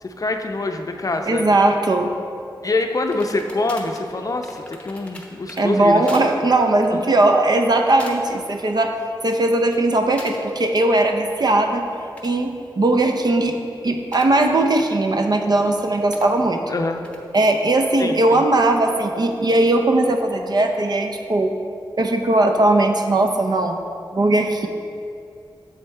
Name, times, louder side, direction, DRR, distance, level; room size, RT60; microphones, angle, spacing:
voice 1, 0.0-1.6 2.6-6.1 16.7-17.0 18.0-18.4, left 2 dB, 45° left, 5 dB, 0.5 m, -25 dB
voice 2, 1.3-2.1 5.6-9.0 9.2-11.9 12.2-13.6 13.8-16.6 17.3-21.5 22.0-23.8 24.1-24.7, right 2 dB, 55° right, 4 dB, 0.6 m, -18 dB
sound 1, 3.1-5.6 6.1-6.3 6.7-6.9 7.5-7.7 8.0-8.4 8.8-9.3 10.2-10.4 11.9-14.4 14.8-14.9 16.1-16.3 17.0-17.2, left 1 dB, 15° left, 0.8 m, -41 dB
7.2 x 5.4 x 4.4 m, 2.5 s
wide cardioid pair, 85°, 9 cm